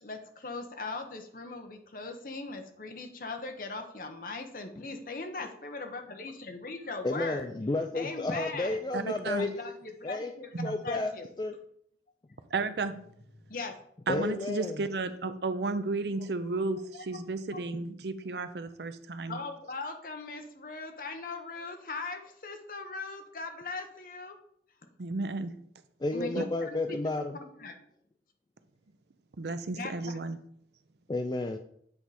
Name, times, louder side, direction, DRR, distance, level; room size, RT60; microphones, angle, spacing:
voice 1, 0.0-7.5 7.9-8.8 9.3-11.3 13.5-13.7 16.9-17.1 17.5-17.6 18.3-18.4 19.3-24.4 26.1-27.1 27.4-27.8 29.8-29.9, left 3 dB, 50° left, 5 dB, 1.0 m, -40 dB
voice 2, 7.0-9.7 10.0-10.3 10.6-11.1 11.4-11.5 14.1-14.8 26.0-27.4 31.1-31.6, left 2 dB, 25° left, 6 dB, 0.4 m, -31 dB
voice 3, 8.9-9.5 10.6-10.8 12.5-12.9 14.1-19.4 25.0-25.5 26.4-26.5 29.4-30.4, right 3 dB, 70° right, 11 dB, 0.6 m, -33 dB
8.0 x 4.7 x 4.2 m, 0.67 s
head